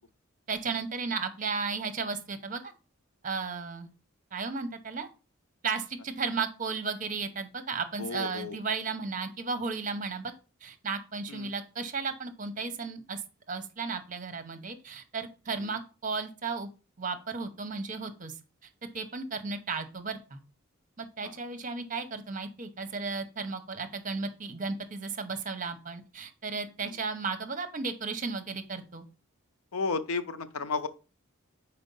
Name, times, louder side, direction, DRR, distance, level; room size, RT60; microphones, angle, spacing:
voice 1, 0.5-2.7 3.2-3.9 4.3-5.1 5.6-10.3 10.6-13.2 13.5-16.7 17.0-18.3 18.9-20.4 21.0-29.1, right 4 dB, 40° right, 0.8 m, -34 dB
voice 2, 8.0-8.6 11.3-11.5 15.6-15.8 21.2-21.4 26.8-27.0 29.7-30.9, left 4 dB, 90° left, 0.7 m, -33 dB
5.2 x 4.4 x 5.4 m
head